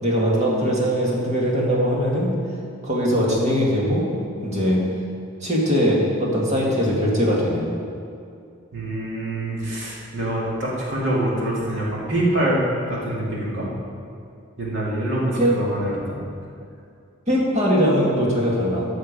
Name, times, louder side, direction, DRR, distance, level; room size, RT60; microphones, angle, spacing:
voice 1, 0.0-2.3 2.8-4.0 4.4-4.8 5.4-7.7 15.4-15.5 17.3-18.9, equal, 30° right, -4 dB, 2.0 m, -21 dB
voice 2, 8.7-13.7 14.6-16.2, right 1 dB, 60° right, -5 dB, 2.4 m, -25 dB
13.5 x 6.4 x 5.3 m, 2.4 s
head